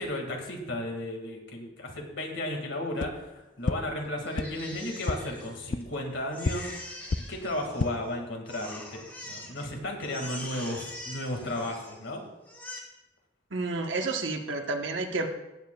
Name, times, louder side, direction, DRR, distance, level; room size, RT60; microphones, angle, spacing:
voice 1, 0.0-3.1 3.6-12.2, left 1 dB, 75° left, 3 dB, 2.1 m, -34 dB
sound 1, 3.0-3.1 3.6-3.7 4.3-4.4 5.0-5.1 5.7-5.8 6.4-6.5 7.1-7.2 7.6-7.9, left 4 dB, 40° left, 0.4 m, -28 dB
Crying sobbing, 4.3-5.9 6.3-8.1 8.5-9.7 10.0-12.1 12.4-12.8, left 1 dB, 10° left, 1.5 m, -43 dB
voice 2, 13.5-15.3, right 3 dB, 75° right, 3 dB, 1.2 m, -30 dB
17.0 x 9.0 x 2.4 m, 1.0 s
head